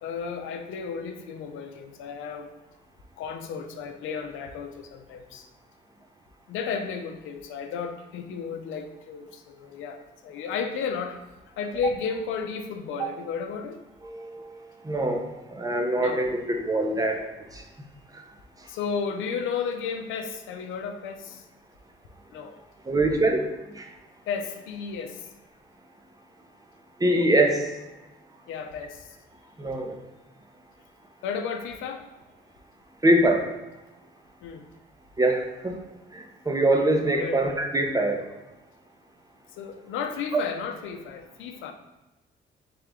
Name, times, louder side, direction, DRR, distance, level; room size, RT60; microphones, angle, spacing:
voice 1, 0.0-2.5 3.2-5.5 6.5-11.2 11.6-13.8 16.0-16.2 18.7-21.5 22.3-22.6 24.3-25.3 28.5-29.2 31.2-32.1 34.4-34.7 37.1-37.4 39.6-41.7, left 6 dB, 90° left, 6 dB, 0.5 m, -33 dB
voice 2, 14.0-17.2 17.5-17.6 18.1-18.2 18.6-18.7 22.8-23.9 27.0-27.7 29.6-30.0 33.0-33.5 35.2-35.8 36.1-38.3, right 1 dB, 20° right, 3 dB, 0.7 m, -24 dB
3.7 x 3.3 x 3.6 m, 1.1 s
cardioid pair, 90°, 20 cm